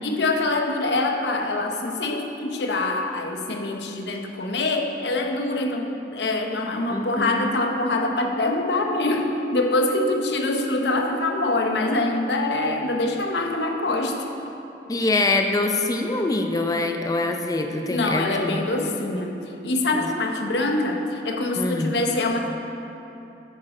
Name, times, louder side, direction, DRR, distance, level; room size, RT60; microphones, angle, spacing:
voice 1, 0.0-14.3 17.9-19.4 19.6-22.5, left 2 dB, 70° left, 3 dB, 0.8 m, -24 dB
voice 2, 6.9-7.5 14.9-18.6 19.9-20.1 21.5-21.9, left 2 dB, 20° left, 4 dB, 0.5 m, -24 dB
8.9 x 6.5 x 4.9 m, 3.0 s
head